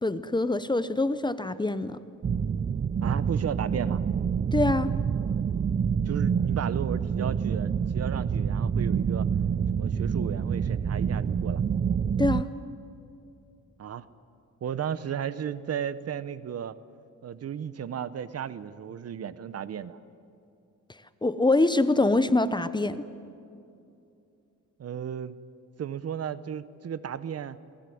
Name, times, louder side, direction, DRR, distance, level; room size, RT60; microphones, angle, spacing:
voice 1, 0.0-2.0 4.5-4.9 12.2-12.5 21.2-23.0, left 2 dB, 15° left, 13 dB, 0.8 m, -24 dB
sound 1, 2.2-12.4, right 7 dB, 25° right, 0.5 m, -27 dB
voice 2, 3.0-4.0 6.1-9.3 9.7-11.6 13.8-14.1 14.6-16.8 17.2-20.0 24.8-25.4 25.8-27.6, right 8 dB, 50° right, 16 dB, 0.8 m, -34 dB
21.5 x 19.0 x 9.3 m, 2.6 s
cardioid pair, 95°, 32 cm